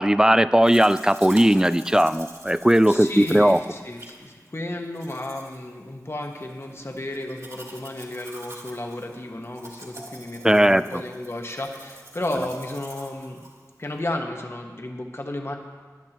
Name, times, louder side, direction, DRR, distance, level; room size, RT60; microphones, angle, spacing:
voice 1, 0.0-3.6 10.4-10.8, right 1 dB, 10° right, 14 dB, 0.3 m, -18 dB
Domestic sounds home sounds, 0.6-14.0, right 1 dB, 55° right, 2.1 m, -45 dB
voice 2, 2.9-13.4 13.8-15.5, left 1 dB, 40° left, 2 dB, 1.3 m, -33 dB
18.5 x 11.0 x 3.0 m, 1.5 s
wide cardioid pair, 60°, 6 cm